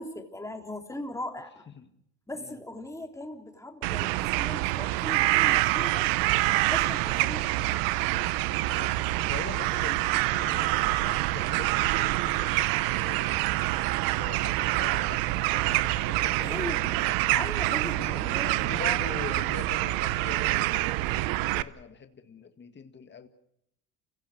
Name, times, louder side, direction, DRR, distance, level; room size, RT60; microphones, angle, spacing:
voice 1, 0.0-1.6 2.3-6.1 6.7-7.5 16.4-17.0 17.3-19.0, left 1 dB, 10° left, 3.5 m, -39 dB
sound 1, 3.8-21.6, right 18 dB, 85° right, 0.8 m, -26 dB
voice 2, 9.3-13.5 14.2-17.2 17.9-18.2 18.6-23.3, left 6 dB, 30° left, 2.0 m, -43 dB
29.5 x 17.0 x 6.5 m
supercardioid pair, 90°, 34 cm